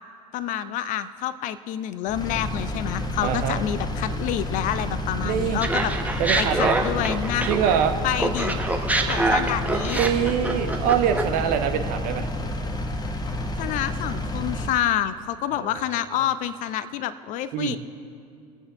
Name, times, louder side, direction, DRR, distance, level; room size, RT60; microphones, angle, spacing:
voice 1, 0.3-7.5 8.0-8.6 9.0-10.0 13.6-17.8, left 11 dB, 40° left, 14 dB, 0.6 m, -28 dB
Engine, 2.1-14.7, left 1 dB, 20° left, 1.1 m, -30 dB
voice 2, 3.2-3.6 5.2-5.6 6.2-6.8 7.5-8.0 9.9-12.3 15.6-15.8 17.5-17.8, right 9 dB, 45° right, 6 dB, 1.1 m, -24 dB
Laughter, 5.6-7.9 8.2-11.4, right 2 dB, 10° right, 1.1 m, -25 dB
24.5 x 8.6 x 3.6 m, 2.4 s
figure-of-eight pair, 70°, 20 cm